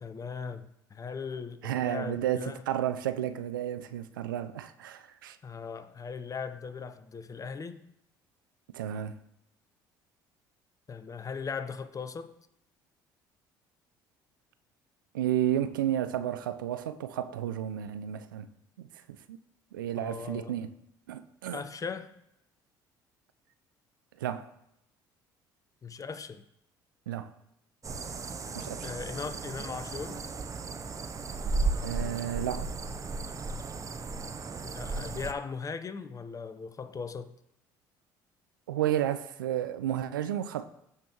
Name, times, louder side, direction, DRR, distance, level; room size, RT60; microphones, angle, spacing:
voice 1, 0.0-2.6 5.4-7.8 10.9-12.3 20.0-20.5 21.5-22.1 25.8-26.4 28.8-30.2 34.6-37.3, left 5 dB, 30° left, 0.8 m, -38 dB
voice 2, 1.6-5.4 8.7-9.2 15.1-18.5 18.8-18.9 19.3-19.4 19.7-20.7 21.1-21.6 24.2-24.5 27.1-27.3 28.5-28.9 31.8-32.7 38.7-40.7, right 11 dB, 85° right, 0.4 m, -32 dB
sound 1, 27.8-35.3, right 3 dB, 30° right, 0.7 m, -35 dB
14.5 x 5.2 x 3.0 m
hypercardioid pair, 60°, 11 cm